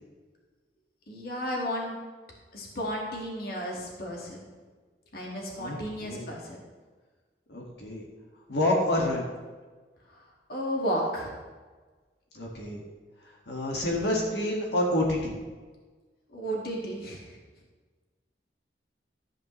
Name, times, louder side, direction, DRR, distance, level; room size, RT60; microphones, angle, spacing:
voice 1, 1.1-2.0 2.5-4.4 5.1-6.6 10.1-10.2 10.5-11.3 16.3-17.4, equal, 60° left, -2 dB, 2.0 m, -33 dB
voice 2, 7.5-8.0 8.5-9.2 12.3-12.8 13.5-15.3, left 1 dB, 80° left, -2 dB, 1.9 m, -28 dB
13.5 x 8.8 x 3.2 m, 1.4 s
head